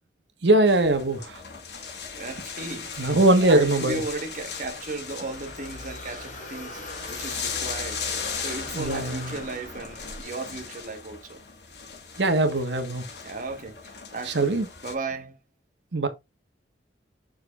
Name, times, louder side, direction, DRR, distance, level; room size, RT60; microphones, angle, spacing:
voice 1, 0.4-1.4 3.0-4.0 8.7-9.3 12.2-13.0 14.2-14.7 15.9-16.1, right 2 dB, 80° right, 1.3 m, -21 dB
sound 1, 0.7-14.9, left 6 dB, 65° left, 2.3 m, -38 dB
voice 2, 2.2-8.0 8.4-11.4 13.2-14.5 14.8-15.4, right 3 dB, 45° right, 1.3 m, -36 dB
sound 2, 2.7-10.2, left 2 dB, 45° left, 3.7 m, -42 dB
7.5 x 6.6 x 2.4 m
head